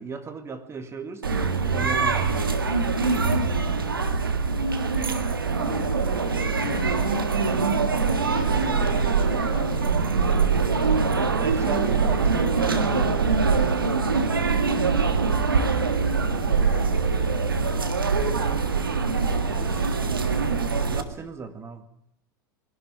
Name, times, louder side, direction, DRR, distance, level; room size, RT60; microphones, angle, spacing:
voice 1, 0.0-2.5 11.3-13.6 19.5-20.2 20.8-21.9, right 4 dB, 25° right, 8 dB, 2.1 m, -37 dB
sound 1, 1.2-21.0, right 4 dB, 90° right, 1.7 m, -23 dB
voice 2, 5.5-6.0 6.5-7.2 8.2-10.1 16.2-16.9, left 9 dB, 60° left, 4 dB, 3.5 m, -38 dB
21.0 x 12.0 x 10.0 m, 0.73 s
hypercardioid pair, 85°, 11 cm